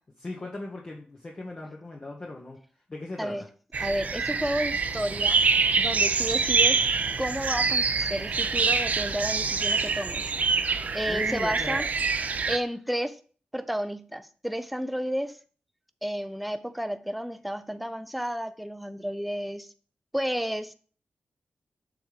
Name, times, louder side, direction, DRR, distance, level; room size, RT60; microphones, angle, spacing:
voice 1, 0.2-2.6 2.9-3.5 11.0-11.9, left 2 dB, 35° left, 0.9 m, -38 dB
sound 1, 3.7-12.6, right 4 dB, 55° right, 0.5 m, -25 dB
voice 2, 3.8-5.4 5.8-6.8 7.2-10.2 10.9-11.9 12.5-13.2 13.5-15.4 16.0-19.7 20.1-20.7, equal, ahead, 0.5 m, -31 dB
7.0 x 3.6 x 4.9 m
wide cardioid pair, 115°, 3 cm